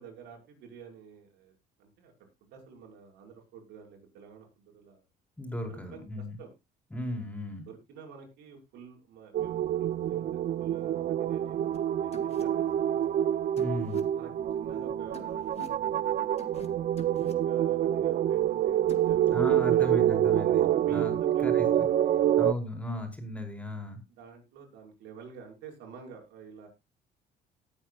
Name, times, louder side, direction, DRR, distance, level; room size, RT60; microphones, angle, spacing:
voice 1, 0.0-5.0 5.7-6.5 7.7-13.1 14.1-16.6 17.2-19.2 19.7-19.9 20.7-21.9 22.2-22.4 24.2-26.7, right 6 dB, 85° right, 1 dB, 5.9 m, -49 dB
voice 2, 5.4-6.4 6.9-7.7 13.6-14.0 19.3-21.1 21.4-21.9 22.4-24.0, left 1 dB, 10° left, 5 dB, 4.8 m, -35 dB
sound 1, 9.3-22.5, right 11 dB, 50° right, 0.7 m, -27 dB
sound 2, 11.7-11.8 12.1-12.4 13.6-14.0 15.1-15.8 16.4-16.7 17.0-17.3 18.9-19.1, left 5 dB, 40° left, 1.9 m, -47 dB
18.5 x 8.8 x 2.5 m, 0.24 s
cardioid pair, 110°, 17 cm